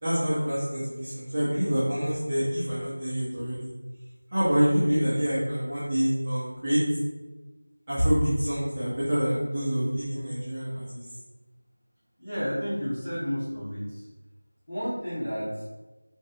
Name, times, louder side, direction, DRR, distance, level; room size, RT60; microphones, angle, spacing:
voice 1, 0.0-3.7 4.3-6.8 7.9-11.0, equal, 20° right, -13 dB, 0.7 m, -26 dB
voice 2, 12.2-14.1 14.7-15.7, equal, 5° left, -18 dB, 1.1 m, -31 dB
3.0 x 2.6 x 4.1 m, 1.2 s
figure-of-eight pair, 175°, 0 cm